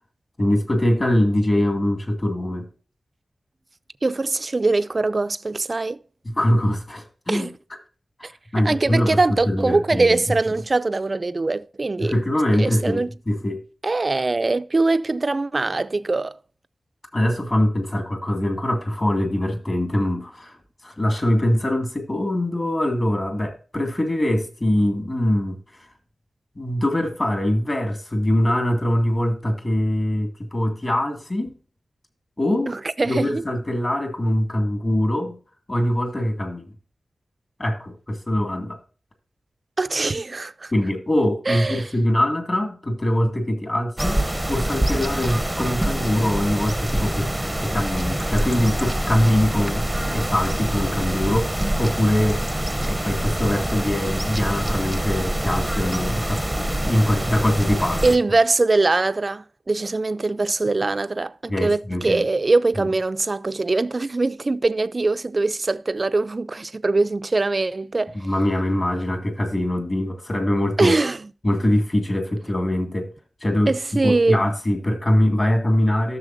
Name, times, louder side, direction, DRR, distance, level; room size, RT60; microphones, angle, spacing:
voice 1, 0.4-2.7 6.2-7.5 8.2-10.2 12.0-13.6 17.1-20.6 20.8-25.9 26.6-31.5 32.4-32.8 33.1-35.4 35.7-36.7 37.6-38.8 40.7-44.2 44.5-47.3 47.6-52.4 52.7-58.0 61.5-62.2 68.1-71.0 71.4-73.1 73.4-73.7 74.0-76.2, left 1 dB, 30° left, 2.1 m, -23 dB
voice 2, 4.0-6.0 7.3-7.5 8.2-8.3 8.6-12.1 12.5-13.1 13.8-16.3 32.7-33.4 39.8-40.7 41.5-41.9 58.0-68.2 70.8-71.2 73.7-74.4, right 3 dB, 35° right, 0.4 m, -22 dB
sound 1, 44.0-58.2, right 1 dB, 5° right, 0.7 m, -25 dB
13.0 x 6.7 x 2.6 m
wide cardioid pair, 120°, 0 cm